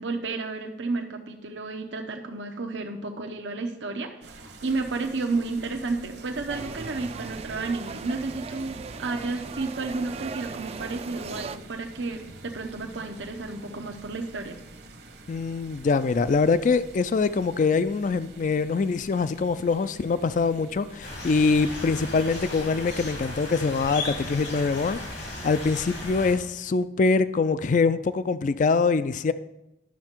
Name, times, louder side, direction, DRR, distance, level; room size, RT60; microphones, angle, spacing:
voice 1, 0.0-14.6, right 3 dB, 85° right, 0.8 m, -32 dB
Toilet flush + Tank refilling, 4.2-22.6, right 2 dB, 60° right, 1.1 m, -47 dB
sound 1, 6.5-11.6, right 4 dB, 35° right, 0.3 m, -38 dB
voice 2, 15.3-29.3, left 4 dB, 45° left, 0.4 m, -24 dB
sound 2, 21.0-26.3, left 2 dB, 80° left, 3.0 m, -36 dB
11.5 x 6.6 x 4.5 m
head